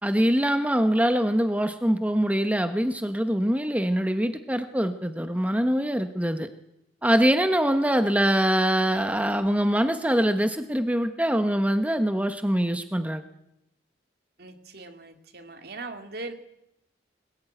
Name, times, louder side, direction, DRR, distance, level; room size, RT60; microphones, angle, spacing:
voice 1, 0.0-6.5 7.0-13.2, equal, 10° right, 8 dB, 1.1 m, -23 dB
voice 2, 14.4-16.3, right 3 dB, 60° right, 7 dB, 2.4 m, -40 dB
21.0 x 20.0 x 9.1 m, 0.84 s
head